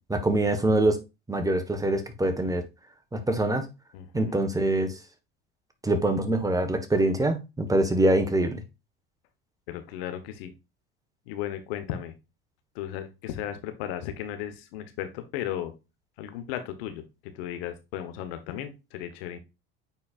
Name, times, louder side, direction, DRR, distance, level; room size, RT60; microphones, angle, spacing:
voice 1, 0.1-1.0 1.3-2.7 3.1-3.6 4.1-4.9 5.8-8.6, right 1 dB, 10° right, 1.3 m, -24 dB
voice 2, 3.9-4.4 9.7-10.5 11.3-12.1 12.7-15.7 16.2-19.4, left 11 dB, 75° left, 1.2 m, -35 dB
9.1 x 4.4 x 2.5 m
supercardioid pair, 90°, 30 cm